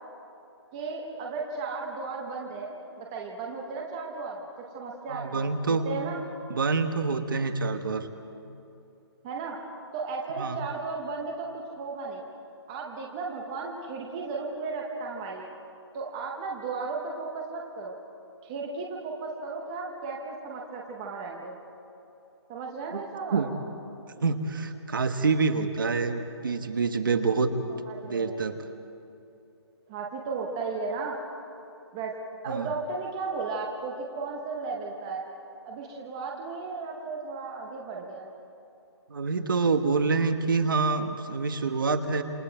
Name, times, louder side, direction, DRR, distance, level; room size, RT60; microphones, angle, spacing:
voice 1, 0.7-6.2 9.2-9.6 9.9-12.2 12.7-15.5 15.9-18.0 18.4-21.6 22.5-23.4 27.9-28.3 29.9-31.1 31.9-32.1 32.4-35.2 35.7-38.3, right 4 dB, 10° right, -1 dB, 0.8 m, -35 dB
voice 2, 5.1-5.9 6.5-8.1 10.4-10.6 22.9-23.0 23.3-23.5 24.2-27.5 28.0-28.6 32.5-32.7 39.1-42.2, right 4 dB, 50° right, 8 dB, 1.4 m, -26 dB
27.5 x 26.0 x 4.5 m, 2.8 s
hypercardioid pair, 180°, 14 cm